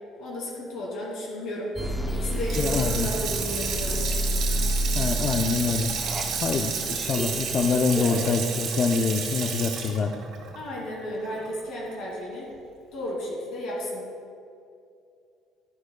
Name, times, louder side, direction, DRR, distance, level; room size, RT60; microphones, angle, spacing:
voice 1, 0.2-1.7 2.1-4.0 7.9-8.3 10.5-12.5 12.9-14.0, left 1 dB, 65° left, -3 dB, 2.2 m, -33 dB
sound 1, 1.8-8.3, equal, 10° right, 0.6 m, -30 dB
Water tap faucet / Sink (filling or washing), 2.3-11.5 11.9-12.0, right 6 dB, 60° right, 1.9 m, -31 dB
voice 2, 2.6-3.1 4.9-5.9 6.4-10.1, left 5 dB, 35° left, 5 dB, 0.4 m, -25 dB
12.0 x 11.0 x 2.2 m, 2.4 s
cardioid pair, 165°, 0 cm